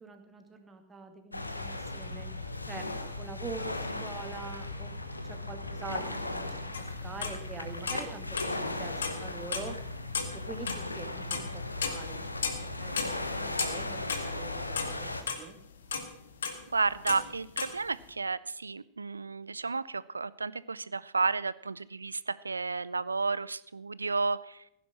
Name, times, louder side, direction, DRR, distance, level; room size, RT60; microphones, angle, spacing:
voice 1, 0.0-2.3 2.7-2.9 3.2-4.9 5.2-9.8 10.3-15.6, right 4 dB, 20° right, 5 dB, 2.2 m, -44 dB
sound 1, 1.3-15.2, left 2 dB, 85° left, 1.2 m, -37 dB
sound 2, 6.7-7.4 7.7-8.6 9.0-9.8 10.0-12.7 13.0-15.4 15.8-17.7, left 5 dB, 70° left, 1.7 m, -34 dB
voice 2, 16.7-24.6, right 4 dB, 80° right, 18 dB, 0.5 m, -32 dB
16.0 x 10.0 x 6.1 m, 0.77 s
figure-of-eight pair, 90°, 0 cm